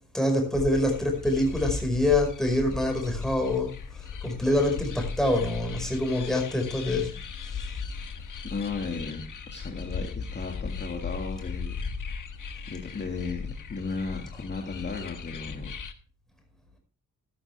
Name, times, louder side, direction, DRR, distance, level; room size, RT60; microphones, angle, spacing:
voice 1, 0.1-3.7 4.2-7.1, left 1 dB, ahead, 2 dB, 5.0 m, -25 dB
sound 1, 0.5-15.9, left 5 dB, 60° left, 1.4 m, -37 dB
voice 2, 8.4-9.3 9.5-11.8 12.7-15.8, left 4 dB, 30° left, 1 dB, 2.0 m, -35 dB
14.5 x 11.5 x 3.4 m, 0.38 s
wide cardioid pair, 120°, 34 cm